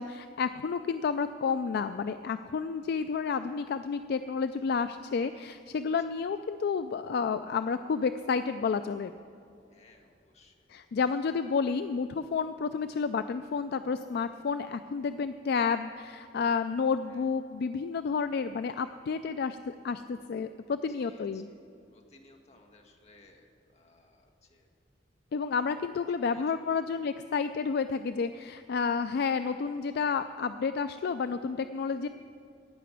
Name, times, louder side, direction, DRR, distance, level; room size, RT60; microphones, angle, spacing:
voice 1, 0.0-9.1 10.7-19.6 19.8-21.5 25.3-32.1, left 5 dB, 60° left, 10 dB, 0.3 m, -30 dB
voice 2, 9.7-11.1 17.1-17.3 21.0-21.6 21.9-24.7 26.3-26.8 29.1-29.3, left 2 dB, 35° left, 2 dB, 1.5 m, -60 dB
15.5 x 5.9 x 9.6 m, 2.6 s
head